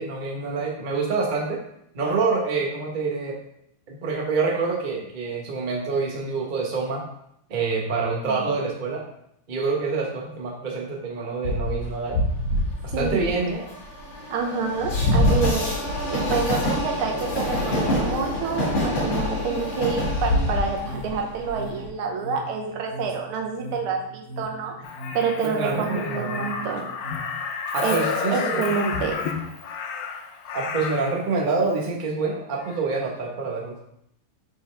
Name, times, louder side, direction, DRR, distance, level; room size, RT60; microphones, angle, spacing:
voice 1, 0.0-1.6 1.9-3.4 3.9-7.0 7.5-9.0 9.5-12.2 13.0-13.7 25.4-26.4 27.7-28.6 30.5-33.9, right 4 dB, 35° right, -1 dB, 0.9 m, -26 dB
Train, 11.4-21.9, left 1 dB, 65° left, 2.5 m, -25 dB
voice 2, 12.9-13.3 14.3-15.7 16.1-24.7 25.1-26.9 27.8-29.2, right 5 dB, 85° right, 2 dB, 1.8 m, -28 dB
sound 1, 20.5-27.2, equal, 50° right, 2.2 m, -41 dB
Crow, 24.8-31.2 32.6-32.8, left 5 dB, 80° left, 0.8 m, -31 dB
5.5 x 5.3 x 3.4 m, 0.74 s
omnidirectional pair, 2.3 m